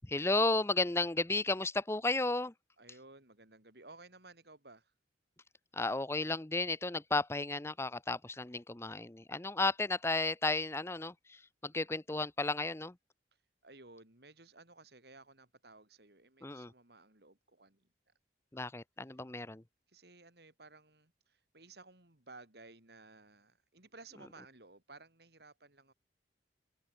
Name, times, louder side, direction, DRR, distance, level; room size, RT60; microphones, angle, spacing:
voice 1, 0.0-2.5 5.7-13.0 16.4-16.7 18.5-19.6, left 2 dB, 15° left, 0.7 m, -33 dB
voice 2, 2.8-4.9 11.6-11.8 13.3-18.1 19.9-25.9, right 3 dB, 60° right, 4.0 m, -57 dB
head